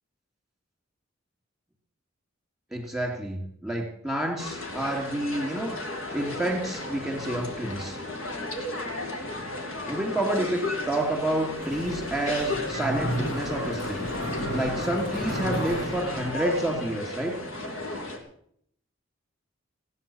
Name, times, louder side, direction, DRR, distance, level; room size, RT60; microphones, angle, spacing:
voice 1, 2.7-5.7 6.1-8.0 9.9-14.0 14.5-17.4, right 1 dB, ahead, 0 dB, 2.9 m, -29 dB
sound 1, 4.4-18.2, left 2 dB, 90° left, 2.9 m, -34 dB
Mechanisms, 11.6-16.8, equal, 70° left, 4.3 m, -33 dB
17.0 x 9.4 x 7.2 m, 0.67 s
head